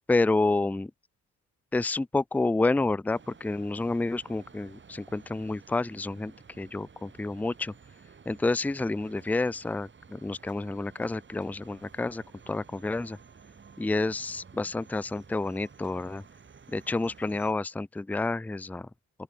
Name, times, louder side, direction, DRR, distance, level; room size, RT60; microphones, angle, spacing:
voice 1, 0.1-0.9 1.7-7.7 8.3-13.2 13.8-16.2 16.7-18.9, left 2 dB, 5° left, 0.5 m, -29 dB
sound 1, 3.1-17.5, right 6 dB, 40° right, 5.4 m, -53 dB
open air
cardioid pair, 90°, 30 cm